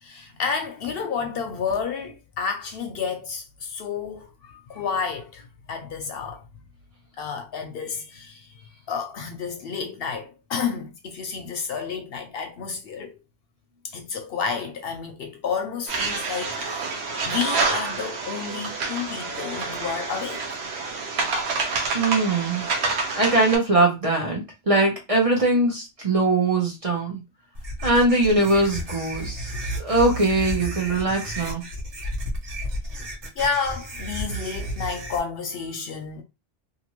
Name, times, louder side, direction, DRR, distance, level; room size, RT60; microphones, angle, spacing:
voice 1, 0.0-6.4 7.2-8.5 8.9-13.2 13.8-20.6 33.4-36.2, left 6 dB, 65° left, 0.7 m, -30 dB
sound 1, 15.9-23.6, right 4 dB, 70° right, 1.0 m, -28 dB
voice 2, 21.9-22.6 23.1-27.2 27.8-29.5 29.8-31.6, right 2 dB, 35° right, 0.8 m, -21 dB
sound 2, 27.5-35.2, equal, 90° right, 1.2 m, -32 dB
2.6 x 2.5 x 2.9 m
omnidirectional pair, 1.2 m